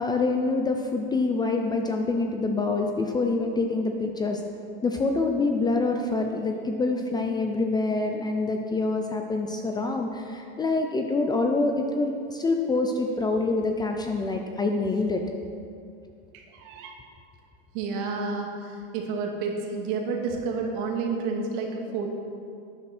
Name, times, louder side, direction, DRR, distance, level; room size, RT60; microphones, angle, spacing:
voice 1, 0.0-4.4 4.8-15.2, left 3 dB, 15° left, 3 dB, 0.6 m, -26 dB
voice 2, 16.3-17.0 17.7-22.1, right 4 dB, 55° right, 1 dB, 2.1 m, -30 dB
12.0 x 9.6 x 4.4 m, 2.5 s
supercardioid pair, 130°, 31 cm